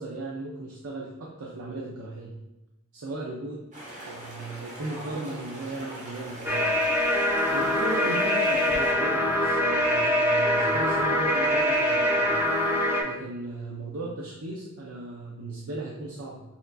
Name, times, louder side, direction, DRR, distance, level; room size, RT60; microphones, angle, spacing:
voice 1, 0.0-2.4 2.9-3.6 4.0-6.8 7.5-12.3 13.0-16.4, right 2 dB, 70° right, -3 dB, 0.6 m, -36 dB
sound 1, 3.7-8.9, right 1 dB, 35° right, 1.2 m, -41 dB
sound 2, 6.5-13.0, left 1 dB, 10° right, 0.5 m, -24 dB
6.7 x 2.6 x 2.3 m, 0.99 s
head